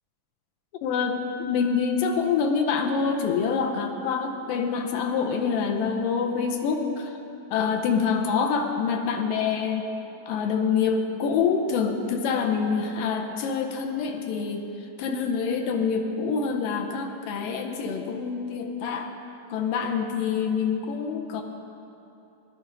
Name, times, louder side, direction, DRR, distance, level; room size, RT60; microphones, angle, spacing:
voice 1, 0.8-7.2 7.5-9.9 10.3-19.1 19.5-21.4, left 6 dB, 80° left, 3 dB, 2.4 m, -26 dB
17.0 x 11.5 x 3.9 m, 2.9 s
omnidirectional pair, 4.0 m